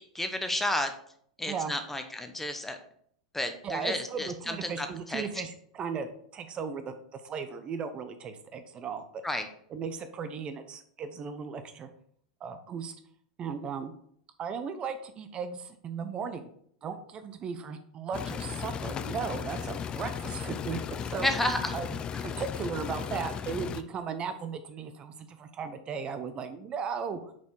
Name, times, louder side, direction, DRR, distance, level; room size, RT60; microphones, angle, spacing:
voice 1, 0.1-0.9 1.4-2.8 3.3-5.2 9.2-9.5 21.2-21.8, left 1 dB, 10° left, 7 dB, 0.9 m, -31 dB
voice 2, 3.6-9.0 9.7-11.9 12.4-12.9 13.4-13.9 14.4-16.5 16.8-21.3 21.7-21.9 22.2-27.3, right 6 dB, 35° right, 9 dB, 0.7 m, -36 dB
sound 1, 18.1-23.8, left 7 dB, 30° left, 0.5 m, -36 dB
5.9 x 4.3 x 4.7 m, 0.64 s
hypercardioid pair, 100°, 3 cm